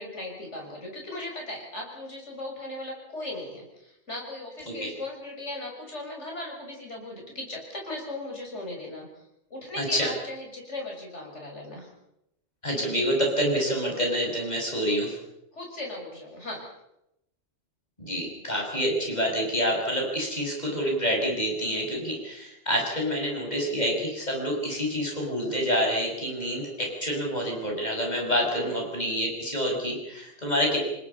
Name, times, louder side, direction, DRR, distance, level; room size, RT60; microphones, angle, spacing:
voice 1, 0.0-9.1 9.5-11.9 15.5-16.6 28.5-28.9, left 2 dB, 65° left, 0 dB, 6.8 m, -38 dB
voice 2, 9.8-10.1 12.6-15.2 18.0-30.8, equal, 35° left, 1 dB, 6.2 m, -27 dB
28.5 x 20.5 x 5.6 m, 0.83 s
omnidirectional pair, 1.3 m